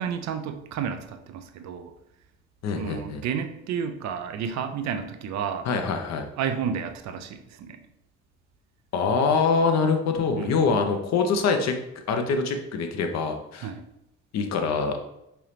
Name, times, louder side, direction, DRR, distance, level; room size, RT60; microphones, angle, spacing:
voice 1, 0.0-1.9 2.7-5.7 6.4-7.8 10.4-10.7 13.6-13.8, right 7 dB, 45° right, 8 dB, 0.5 m, -31 dB
voice 2, 2.6-3.2 5.6-6.3 8.9-11.8 12.1-13.7 14.3-15.0, left 5 dB, 45° left, 5 dB, 0.6 m, -24 dB
4.6 x 3.0 x 3.2 m, 0.83 s
figure-of-eight pair, 40°, 38 cm